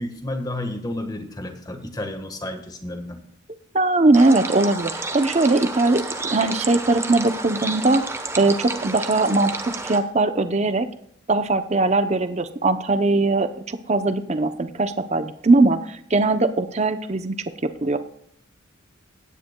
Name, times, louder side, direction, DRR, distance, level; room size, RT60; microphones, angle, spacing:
voice 1, 0.0-3.2, left 1 dB, 20° left, 6 dB, 1.3 m, -31 dB
voice 2, 3.7-6.0 6.3-8.0 8.4-10.9 11.3-17.4 17.6-18.0, right 2 dB, 35° right, 10 dB, 0.6 m, -20 dB
sound 1, 4.1-10.0, right 3 dB, 15° right, 0.9 m, -31 dB
16.5 x 10.0 x 2.2 m, 0.68 s
head